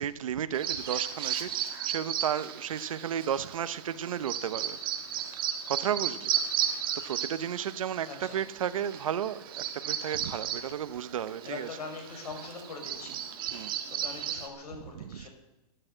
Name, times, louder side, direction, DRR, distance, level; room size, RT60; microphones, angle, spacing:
voice 1, 0.0-4.8 5.4-11.8 12.1-12.4 13.0-13.2 13.5-13.8 14.3-14.4 14.7-15.3, right 9 dB, 55° right, 0.9 m, -34 dB
Bird vocalization bird call bird song, 0.5-14.5, right 9 dB, 35° right, 1.6 m, -35 dB
voice 2, 8.0-8.3 11.4-13.2 13.5-13.6 13.9-15.3, left 3 dB, 70° left, 5.8 m, -42 dB
12.5 x 12.0 x 7.8 m
hypercardioid pair, 170°, 20 cm